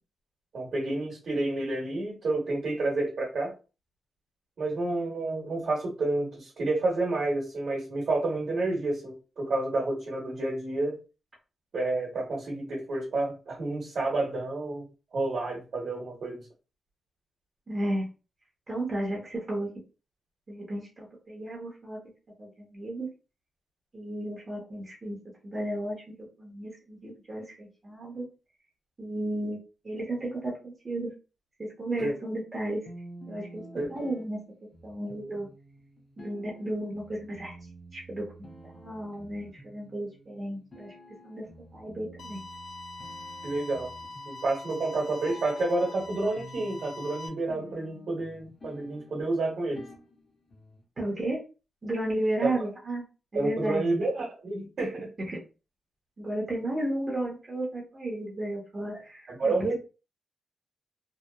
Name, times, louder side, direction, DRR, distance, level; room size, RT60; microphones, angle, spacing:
voice 1, 0.5-3.5 4.6-11.0 11.7-14.9 15.1-16.5 32.0-32.1 33.7-33.9 43.4-43.9 44.2-49.9 52.4-52.5 53.3-55.1 58.9-59.7, right 2 dB, 60° right, -3 dB, 1.0 m, -29 dB
voice 2, 17.7-18.1 18.7-19.7 20.5-22.0 22.4-23.1 23.9-25.2 25.4-26.0 26.4-28.3 29.0-29.6 29.8-31.1 31.6-32.8 33.3-33.6 33.9-34.4 34.8-35.5 36.2-37.5 37.9-38.2 38.7-40.9 41.2-41.4 41.7-42.4 51.0-51.4 51.8-53.0 53.3-53.8 55.3-55.4 56.2-59.7, right 1 dB, 30° right, -3 dB, 0.7 m, -33 dB
sound 1, 32.9-50.8, equal, 35° left, 0.7 m, -50 dB
sound 2, 42.2-47.3, left 2 dB, 80° left, 0.3 m, -43 dB
2.8 x 2.0 x 2.2 m, 0.33 s
wide cardioid pair, 135°, 0 cm